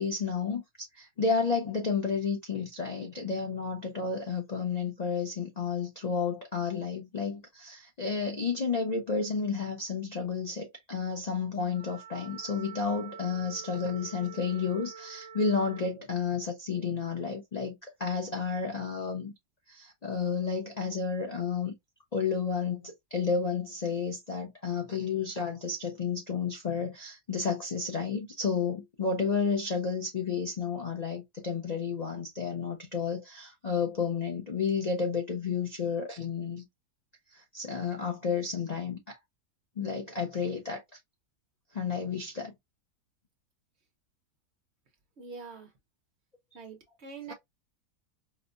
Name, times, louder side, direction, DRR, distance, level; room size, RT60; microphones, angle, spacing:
voice 1, 0.0-19.3 19.7-21.7 22.1-36.6 37.3-39.2 39.8-40.8 41.7-42.5, left 5 dB, 45° left, 0.5 m, -31 dB
Wind instrument woodwind instrument, 11.7-16.0, right 7 dB, 10° left, 1.0 m, -47 dB
voice 2, 45.2-45.7 46.5-47.3, right 5 dB, 50° right, 1.0 m, -44 dB
4.8 x 2.1 x 2.5 m
omnidirectional pair, 1.7 m